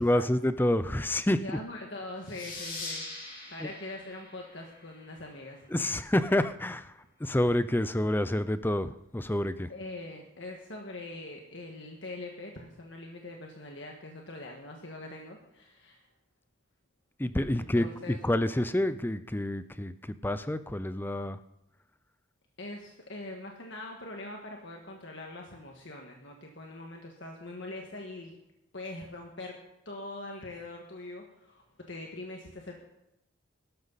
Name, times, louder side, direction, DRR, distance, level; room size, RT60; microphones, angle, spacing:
voice 1, 0.0-1.4 3.6-3.7 5.7-6.9 7.2-9.7 17.2-19.9 20.2-21.4, left 1 dB, 10° left, 13 dB, 0.5 m, -28 dB
voice 2, 1.4-5.6 9.7-16.1 17.5-18.2 22.6-28.4 28.7-29.6 29.8-32.8, left 2 dB, 60° left, 1 dB, 1.7 m, -43 dB
sound 1, 2.3-5.5, left 2 dB, 45° left, 3.4 m, -42 dB
18.0 x 13.5 x 4.1 m, 0.87 s
head